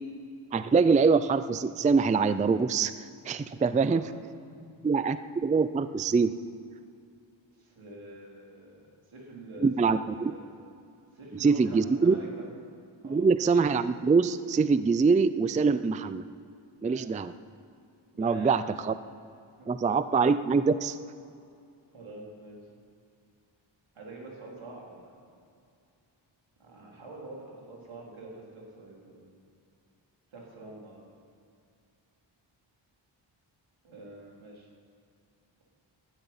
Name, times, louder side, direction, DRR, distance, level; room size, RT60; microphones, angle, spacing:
voice 1, 0.5-4.0 4.8-6.3 9.6-10.3 11.3-12.1 13.0-16.2 16.8-17.3 18.2-18.9 19.7-21.0, right 4 dB, 20° right, 13 dB, 0.3 m, -24 dB
voice 2, 3.6-4.1 4.5-4.9 7.6-9.7 10.0-10.5 11.1-12.4 13.0-13.3 16.8-17.1 18.1-18.5 19.6-19.7 21.9-22.7 23.9-25.2 26.6-29.3 30.3-31.0 33.8-34.7, right 2 dB, 85° right, -2 dB, 3.9 m, -46 dB
12.5 x 11.0 x 9.7 m, 2.4 s
wide cardioid pair, 155°, 47 cm